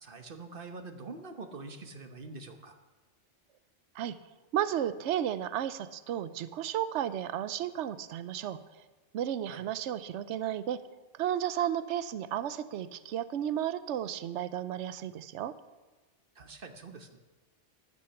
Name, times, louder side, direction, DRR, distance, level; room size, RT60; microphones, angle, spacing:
voice 1, 0.0-2.7 9.5-9.6 16.3-17.2, right 3 dB, 50° right, 7 dB, 1.2 m, -45 dB
voice 2, 4.5-8.6 9.1-10.8 11.1-15.6, right 10 dB, 75° right, 14 dB, 0.9 m, -33 dB
13.0 x 9.5 x 7.0 m, 1.2 s
omnidirectional pair, 1.2 m